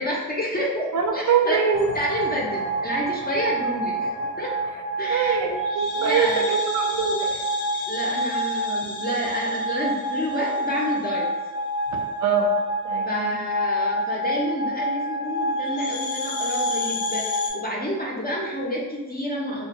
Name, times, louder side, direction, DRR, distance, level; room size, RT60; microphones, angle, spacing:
voice 1, 0.0-1.6 1.9-4.6 5.0-5.4 5.9-6.4 7.9-11.3 13.1-19.7, equal, 25° left, -3 dB, 0.4 m, -29 dB
voice 2, 0.9-1.9 5.1-7.4 11.9-12.5 12.8-13.3, right 6 dB, 45° right, 3 dB, 0.4 m, -24 dB
sound 1, 1.7-17.5, right 1 dB, 75° left, 0.6 m, -27 dB
2.1 x 2.0 x 2.8 m, 1.2 s
cardioid pair, 75°, 41 cm